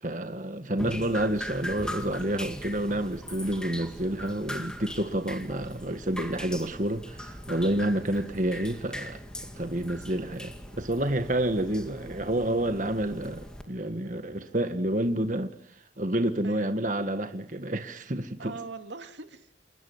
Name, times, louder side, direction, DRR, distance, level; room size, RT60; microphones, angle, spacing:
voice 1, 0.0-9.2 9.6-18.5, right 1 dB, 45° right, 1.7 m, -29 dB
Drip, 0.8-13.6, equal, 5° left, 2.3 m, -40 dB
sound 1, 6.7-15.5, left 1 dB, 85° left, 6.6 m, -57 dB
voice 2, 7.9-8.3 16.4-16.7 18.4-19.6, right 4 dB, 75° right, 2.6 m, -42 dB
28.5 x 20.5 x 7.3 m
head